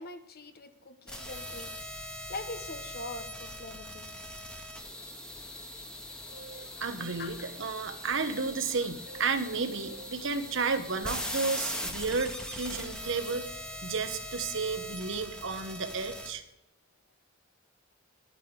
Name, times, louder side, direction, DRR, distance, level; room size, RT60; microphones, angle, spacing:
voice 1, 0.0-4.1 6.7-6.8 7.2-7.6, left 2 dB, 50° left, 8 dB, 1.2 m, -43 dB
sound 1, 1.1-16.3, equal, 5° left, 1.7 m, -41 dB
voice 2, 6.3-16.4, right 4 dB, 65° right, 8 dB, 1.2 m, -32 dB
11.0 x 9.5 x 4.9 m, 0.89 s
head